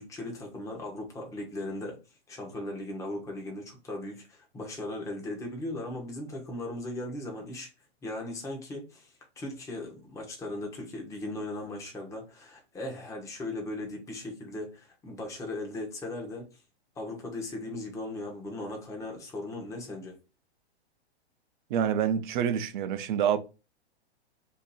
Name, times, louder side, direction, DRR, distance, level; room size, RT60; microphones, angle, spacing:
voice 1, 0.0-2.0 2.3-7.7 8.0-16.5 17.0-20.2, left 1 dB, 10° left, 0.7 m, -38 dB
voice 2, 21.7-23.4, right 8 dB, 45° right, 0.5 m, -27 dB
2.8 x 2.5 x 3.9 m
hypercardioid pair, 135°, 33 cm